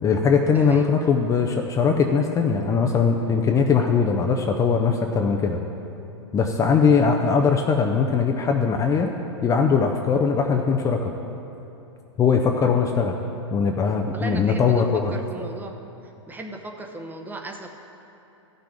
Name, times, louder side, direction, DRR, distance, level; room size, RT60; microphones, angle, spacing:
voice 1, 0.0-5.6 6.3-9.1 9.4-11.1 12.2-13.2 13.5-15.1, left 5 dB, 20° left, 3 dB, 0.6 m, -20 dB
voice 2, 0.5-0.9 14.1-15.7 16.3-17.7, right 2 dB, 10° right, 3 dB, 0.9 m, -36 dB
13.5 x 6.0 x 5.1 m, 2.9 s
hypercardioid pair, 120°, 15 cm